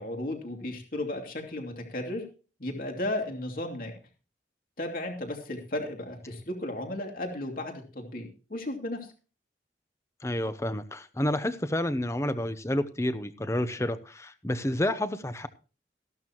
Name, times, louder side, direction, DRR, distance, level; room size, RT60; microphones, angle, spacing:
voice 1, 0.0-2.2 2.6-3.9 4.8-9.1, left 1 dB, 50° left, 3 dB, 2.8 m, -34 dB
voice 2, 10.2-15.5, left 1 dB, 15° left, 11 dB, 0.8 m, -29 dB
14.5 x 12.0 x 3.0 m, 0.36 s
head